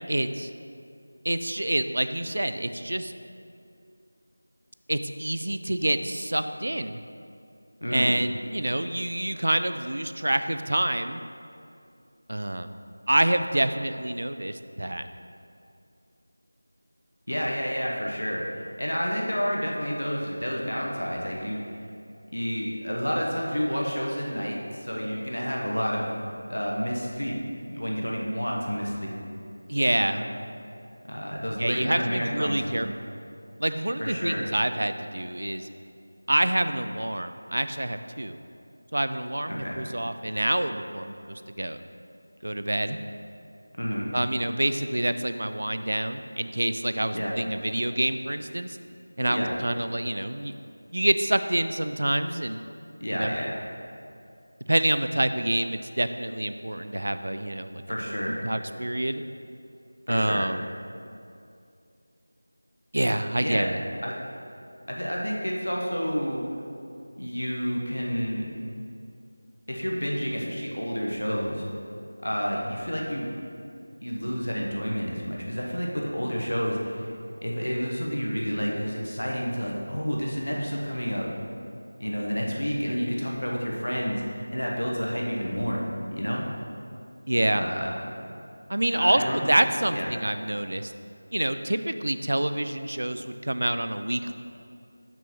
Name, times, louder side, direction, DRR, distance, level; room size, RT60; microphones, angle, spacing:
voice 1, 0.1-0.5 1.2-3.1 4.9-7.0 7.9-11.2 12.3-12.7 13.1-15.1 29.7-30.2 31.6-32.9 33.6-35.7 36.3-38.4 38.9-41.8 42.4-43.0 44.1-48.8 49.2-50.5 50.9-52.6 53.1-53.3 54.7-57.8 58.4-59.2 60.1-60.7 62.9-63.8 87.3-87.6 88.7-90.9 91.3-94.3, right 1 dB, 65° right, 10 dB, 0.4 m, -27 dB
voice 2, 7.8-8.1 17.3-21.8 22.3-26.1 26.5-27.4 27.6-29.2 30.0-30.3 31.1-32.9 34.0-34.4 39.5-39.8 43.8-44.1 47.1-47.4 49.3-49.5 53.0-53.7 57.9-58.5 60.1-60.4 63.4-63.7 64.0-64.1 64.9-66.4 67.1-68.5 69.7-71.6 72.2-73.3 74.0-77.1 77.4-81.3 82.0-86.4 87.5-88.0 88.9-89.5 89.9-90.1, equal, 85° left, -2 dB, 1.1 m, -30 dB
6.0 x 4.5 x 5.2 m, 2.5 s
figure-of-eight pair, 170°, 0 cm